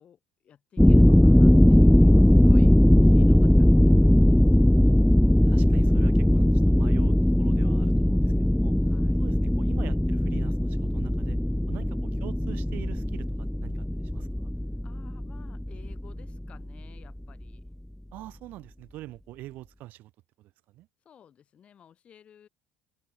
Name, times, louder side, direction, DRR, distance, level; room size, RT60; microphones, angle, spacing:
voice 1, 0.0-4.6 8.9-9.4 11.4-12.0 14.8-17.6 21.0-22.5, left 8 dB, 35° left, 6.1 m, -54 dB
sound 1, 0.8-16.6, left 1 dB, 5° left, 0.4 m, -20 dB
voice 2, 5.4-8.7 9.2-11.4 11.7-11.9 12.2-13.7 14.1-14.5 18.1-20.1 20.4-20.9, right 16 dB, 60° right, 2.2 m, -44 dB
cardioid pair, 135°, 3 cm